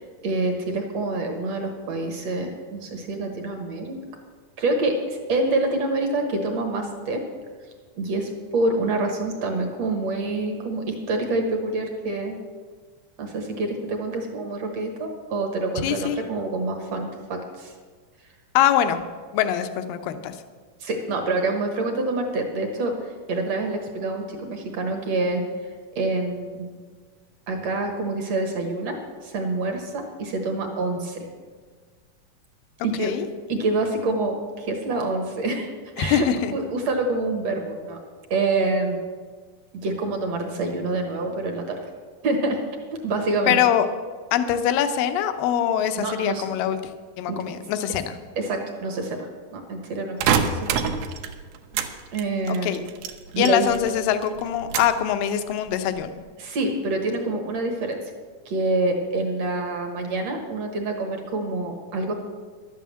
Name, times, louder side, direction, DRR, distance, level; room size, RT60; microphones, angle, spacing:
voice 1, 0.0-4.0 4.6-7.2 8.0-12.4 13.2-17.7 20.8-25.4 25.9-26.7 27.5-31.3 32.8-33.1 33.5-35.7 36.0-38.0 38.3-39.0 39.7-41.8 42.2-42.6 43.0-43.6 46.0-46.5 47.3-47.4 48.4-50.8 52.1-52.8 53.3-53.7 56.4-58.0 58.5-62.1, right 2 dB, 55° right, 3 dB, 2.0 m, -26 dB
voice 2, 15.8-16.2 18.5-19.0 19.3-20.4 32.9-33.3 36.0-36.5 43.5-43.9 44.3-48.2 52.5-52.8 53.4-56.2, left 10 dB, 75° left, 9 dB, 2.4 m, -23 dB
sound 1, 50.2-51.9 52.2-54.0 54.2-55.0 55.5-56.0, right 7 dB, 85° right, 2.8 m, -26 dB
12.0 x 9.3 x 7.6 m, 1.5 s
omnidirectional pair, 4.3 m